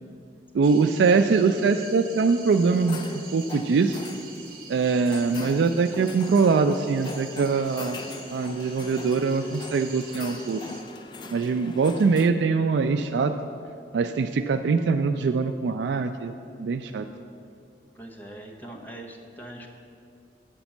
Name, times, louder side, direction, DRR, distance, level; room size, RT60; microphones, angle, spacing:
voice 1, 0.5-4.0 4.7-8.0 8.3-10.6 11.3-13.3 13.9-16.3 16.6-17.1, right 4 dB, 85° right, 8 dB, 0.3 m, -23 dB
sound 1, 0.6-10.8, right 5 dB, 55° right, 1.0 m, -46 dB
sound 2, 2.5-12.3, left 3 dB, 25° left, 0.3 m, -42 dB
voice 2, 17.9-19.7, right 1 dB, 10° left, 1 dB, 0.8 m, -42 dB
8.9 x 5.2 x 7.1 m, 2.5 s
head